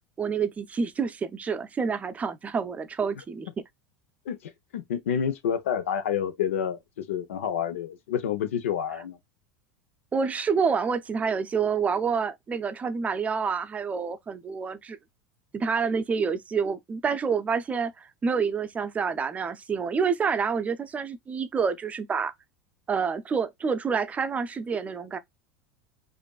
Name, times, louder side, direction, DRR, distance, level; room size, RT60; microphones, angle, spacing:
voice 1, 0.2-3.5 10.1-15.0 15.5-22.3 22.9-25.2, right 5 dB, 20° right, 0.5 m, -28 dB
voice 2, 4.3-9.2, left 8 dB, 90° left, 0.8 m, -29 dB
5.1 x 2.5 x 2.4 m
supercardioid pair, 120°, 7 cm